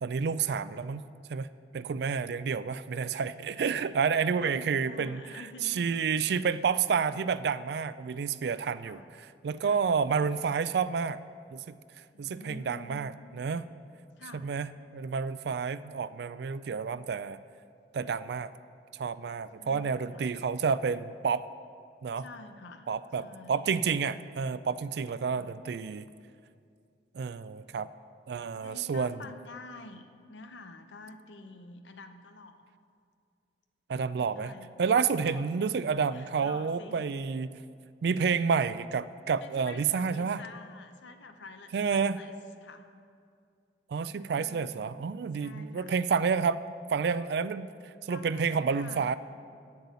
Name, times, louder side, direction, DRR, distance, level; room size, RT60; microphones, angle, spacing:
voice 1, 0.0-1.0 1.3-1.5 1.7-5.2 5.6-9.0 9.4-11.2 11.5-11.8 12.2-13.7 14.3-17.4 17.9-18.5 18.9-21.5 22.0-22.2 22.9-26.0 27.1-27.9 28.3-29.2 33.9-34.5 34.8-37.5 38.0-40.4 41.7-42.2 43.9-46.6 46.9-47.7 48.0-49.1, right 6 dB, 60° right, 15 dB, 0.3 m, -29 dB
voice 2, 4.0-6.4 8.8-9.1 9.6-9.8 12.1-13.0 14.2-14.5 19.6-20.3 22.2-22.9 23.2-23.8 25.3-25.5 28.6-32.7 34.1-34.7 35.2-35.7 36.1-37.3 39.4-42.8 44.4-45.0 45.3-46.0 48.1-49.1, left 3 dB, 85° left, 7 dB, 0.8 m, -49 dB
8.2 x 7.7 x 7.0 m, 2.3 s
head